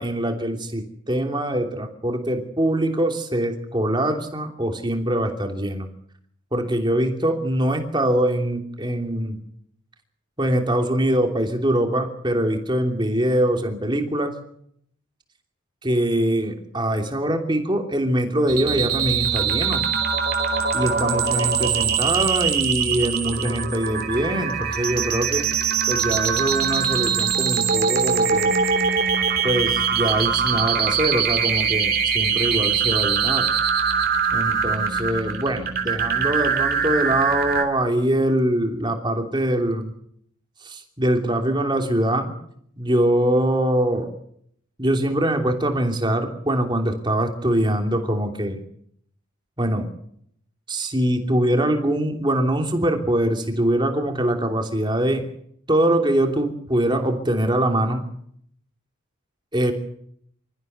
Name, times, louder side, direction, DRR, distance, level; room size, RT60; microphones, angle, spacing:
voice 1, 0.0-5.9 6.5-9.4 10.4-14.4 15.8-19.8 20.7-25.5 25.9-28.5 29.4-33.5 34.3-39.9 40.6-42.3 42.8-44.1 44.8-48.6 49.6-49.9 50.7-55.2 55.7-58.1 59.5-59.7, right 1 dB, 20° right, 4 dB, 3.0 m, -23 dB
sound 1, 18.5-37.6, right 6 dB, 45° right, 3.2 m, -22 dB
27.0 x 14.5 x 8.1 m, 0.68 s
head